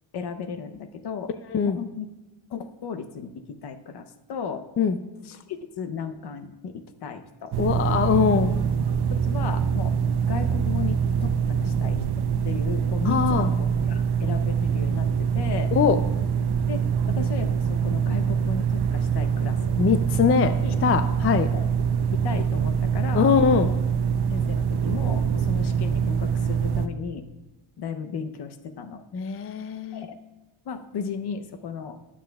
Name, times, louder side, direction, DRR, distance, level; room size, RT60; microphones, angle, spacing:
voice 1, 0.1-1.3 1.6-2.1 2.5-4.6 5.3-7.5 9.1-10.0 10.3-11.4 11.6-12.0 12.4-15.7 16.7-19.8 20.6-20.8 21.5-21.7 22.1-23.3 23.6-23.7 24.3-27.3 27.8-29.0 29.9-30.2 30.7-32.0, left 6 dB, 55° left, 8 dB, 0.8 m, -35 dB
sound 1, 7.5-26.9, right 7 dB, 55° right, 0.6 m, -24 dB
voice 2, 7.6-8.5 13.0-13.5 15.7-16.0 19.8-20.5 20.8-21.5 23.1-23.7 29.1-30.0, left 6 dB, 30° left, 10 dB, 0.4 m, -22 dB
20.0 x 7.4 x 2.3 m, 1.1 s
cardioid pair, 125°, 47 cm